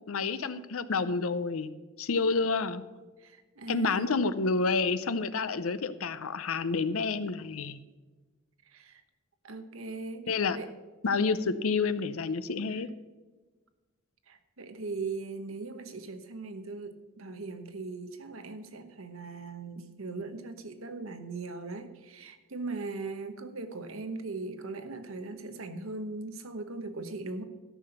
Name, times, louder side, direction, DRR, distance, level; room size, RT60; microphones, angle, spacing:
voice 1, 0.1-1.7 2.0-2.8 3.7-7.8 10.3-10.6 11.0-12.9, left 4 dB, 85° left, 13 dB, 0.6 m, -29 dB
voice 2, 3.2-4.1 8.6-9.0 9.4-10.7 12.7-12.8 14.3-27.4, right 3 dB, 80° right, 9 dB, 1.1 m, -39 dB
13.5 x 6.0 x 6.7 m, 1.2 s
head